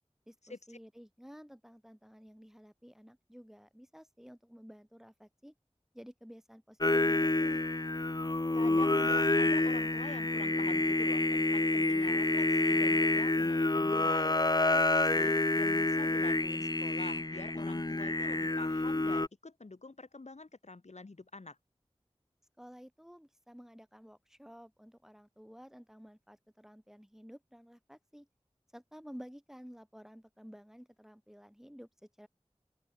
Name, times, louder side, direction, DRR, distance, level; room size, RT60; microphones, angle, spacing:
voice 1, 0.3-5.5 5.9-7.6 22.6-28.3 28.7-31.9 32.2-32.3, equal, 5° right, 5.3 m, -53 dB
Singing, 6.8-19.3, left 2 dB, 35° left, 0.8 m, -28 dB
voice 2, 8.5-14.4 14.7-21.6, left 3 dB, 85° left, 1.8 m, -47 dB
open air
wide cardioid pair, 40°, 11 cm